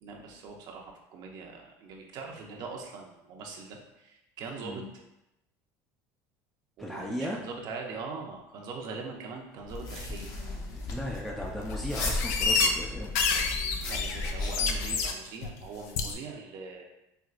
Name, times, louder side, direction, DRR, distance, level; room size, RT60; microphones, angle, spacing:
voice 1, 0.0-4.8 6.8-10.3 13.9-16.8, right 4 dB, 55° right, 1 dB, 0.6 m, -42 dB
voice 2, 6.8-7.4 10.9-13.1, equal, 5° left, -2 dB, 0.4 m, -36 dB
sound 1, 9.7-15.1, left 2 dB, 50° left, 0.8 m, -35 dB
sound 2, 10.9-11.0 11.4-11.7 12.1-12.7 13.0-15.1 15.4-15.7 16.0-16.1, left 5 dB, 85° left, 0.4 m, -28 dB
4.3 x 2.2 x 2.4 m, 0.90 s
supercardioid pair, 105°, 8 cm